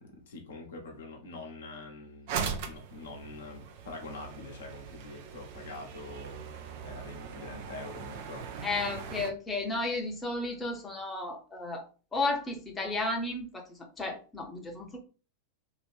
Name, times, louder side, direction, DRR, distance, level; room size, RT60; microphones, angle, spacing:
voice 1, 0.0-6.4 6.8-8.6, left 2 dB, 60° left, 1 dB, 0.8 m, -45 dB
sound 1, 2.3-9.3, right 6 dB, 50° right, 0.5 m, -40 dB
voice 2, 8.6-11.9 12.1-13.6 14.0-15.0, left 2 dB, 15° left, 0 dB, 0.8 m, -33 dB
2.8 x 2.4 x 3.2 m, 0.36 s
figure-of-eight pair, 90°, 0 cm